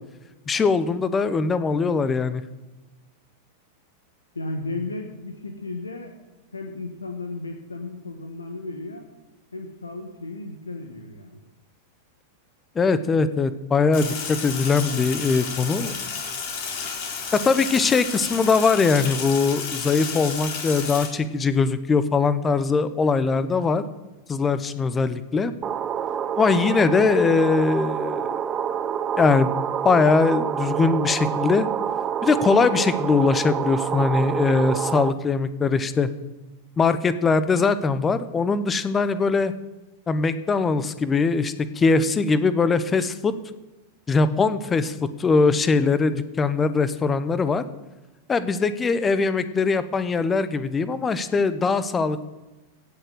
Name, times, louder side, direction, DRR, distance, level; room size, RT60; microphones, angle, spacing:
voice 1, 0.5-2.4 12.7-15.9 16.8-16.9 17.3-23.8 24.3-25.5 26.4-28.4 29.2-29.5 29.8-31.7 32.2-36.1 36.8-39.5 40.1-43.3 44.1-47.6 48.3-52.2, left 4 dB, 20° left, 14 dB, 0.9 m, -21 dB
voice 2, 4.3-6.2 6.5-9.1 9.5-11.4, left 2 dB, 85° left, 4 dB, 1.3 m, -34 dB
Sink (filling or washing), 13.9-21.1, left 5 dB, 50° left, 4.2 m, -32 dB
sound 1, 25.6-35.1, right 8 dB, 25° right, 0.8 m, -27 dB
16.5 x 6.7 x 7.7 m, 1.1 s
figure-of-eight pair, 95°, 0 cm